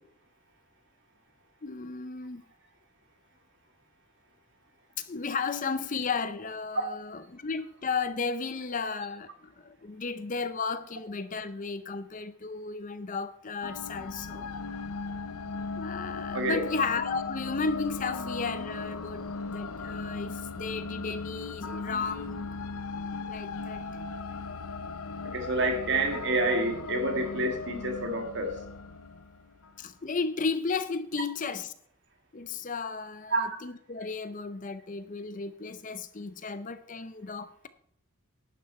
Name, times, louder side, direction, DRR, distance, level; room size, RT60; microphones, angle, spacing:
voice 1, 1.6-2.4 5.0-14.5 15.8-22.5 23.3-24.1 29.8-31.7 32.3-37.7, left 4 dB, 35° left, 12 dB, 0.5 m, -34 dB
sound 1, 13.6-29.8, left 4 dB, 80° left, 0.7 m, -37 dB
voice 2, 25.2-28.5 33.3-33.5, right 2 dB, 50° right, 4 dB, 1.9 m, -28 dB
11.0 x 9.5 x 4.2 m, 0.66 s
head